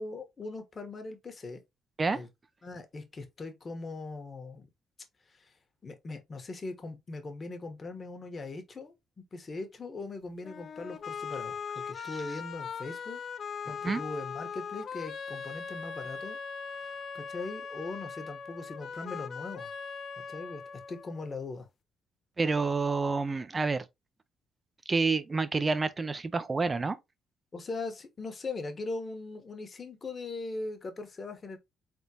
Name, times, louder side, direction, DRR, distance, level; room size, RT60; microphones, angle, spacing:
voice 1, 0.0-1.6 2.1-2.3 2.6-4.7 5.3-5.5 5.8-8.9 9.3-11.6 11.9-13.2 13.7-16.4 16.7-19.7 20.3-20.6 20.9-21.7 27.5-31.6, left 3 dB, 35° left, 1.2 m, -40 dB
sound 1, 10.4-21.4, left 6 dB, 55° left, 0.6 m, -40 dB
voice 2, 22.4-23.8 24.9-27.0, right 4 dB, 30° right, 0.6 m, -28 dB
3.9 x 3.6 x 2.8 m
cardioid pair, 90°, 0 cm